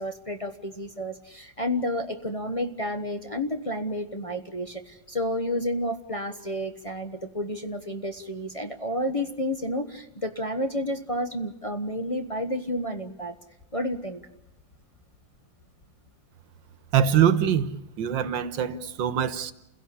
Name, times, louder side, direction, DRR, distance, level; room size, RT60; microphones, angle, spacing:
voice 1, 0.0-13.3 13.7-14.2, left 1 dB, 20° left, 1.1 m, -30 dB
voice 2, 16.9-17.7 18.0-19.5, right 9 dB, 90° right, 1.8 m, -23 dB
29.0 x 16.5 x 8.7 m
omnidirectional pair, 2.0 m